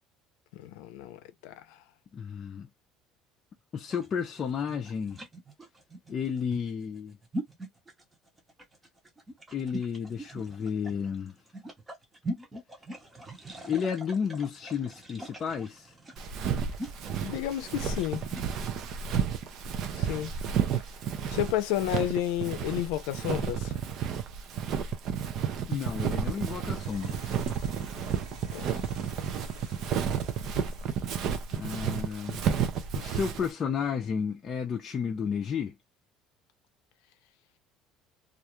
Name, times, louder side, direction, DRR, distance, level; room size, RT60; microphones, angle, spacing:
voice 1, 0.5-1.8 17.2-18.2 20.0-20.3 21.3-23.8 28.5-28.8, left 12 dB, 90° left, 0.5 m, -31 dB
voice 2, 2.1-2.7 3.7-5.2 6.1-7.2 9.5-11.3 13.6-15.9 25.7-27.3 31.5-32.4 32.9-35.7, left 6 dB, 35° left, 0.5 m, -32 dB
sound 1, 3.8-18.5, right 1 dB, 15° right, 0.8 m, -42 dB
Walk footsteps, 16.2-33.5, right 7 dB, 55° right, 0.5 m, -32 dB
sound 2, 26.8-32.3, right 2 dB, 70° right, 1.1 m, -47 dB
2.4 x 2.2 x 2.9 m
cardioid pair, 140°, 0 cm